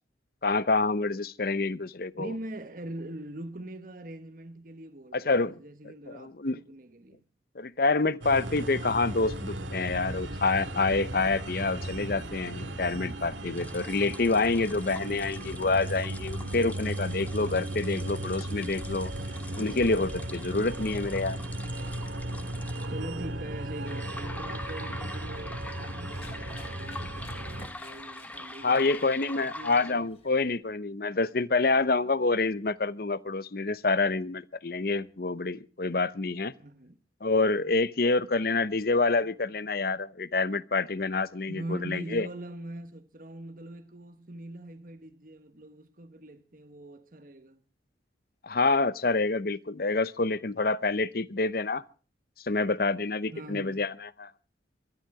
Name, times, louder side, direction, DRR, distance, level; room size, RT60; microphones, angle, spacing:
voice 1, 0.4-2.3 5.1-5.5 6.1-6.6 7.5-19.1 19.6-21.4 28.6-36.5 37.2-42.3 48.4-51.8 52.4-54.3, left 3 dB, 50° left, 0.8 m, -27 dB
voice 2, 2.1-7.2 22.9-30.1 36.6-37.0 41.5-47.6 53.3-53.8, right 1 dB, 45° right, 1.2 m, -42 dB
sound 1, 8.2-27.7, right 1 dB, 90° right, 2.1 m, -36 dB
sound 2, 13.5-22.9 23.8-29.9, left 1 dB, 10° left, 1.2 m, -44 dB
Run, 25.0-30.6, left 3 dB, 30° left, 3.4 m, -56 dB
22.0 x 13.5 x 4.8 m
head